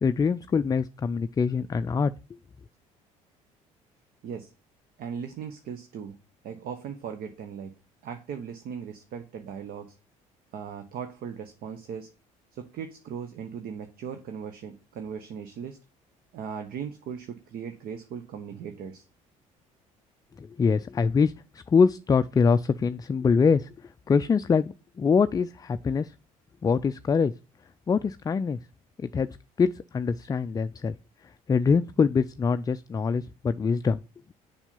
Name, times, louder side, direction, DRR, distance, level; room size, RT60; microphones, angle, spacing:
voice 1, 0.0-2.1 20.4-21.3 21.7-23.7 24.1-26.1 26.6-27.3 27.9-28.6 29.0-29.3 29.6-30.9 31.5-34.0, left 5 dB, 20° left, 0.4 m, -24 dB
voice 2, 5.0-6.2 6.4-7.7 8.0-9.9 10.5-12.1 12.5-15.8 16.3-19.1, right 7 dB, 60° right, 0.9 m, -38 dB
7.1 x 5.5 x 5.4 m
hypercardioid pair, 60°, 18 cm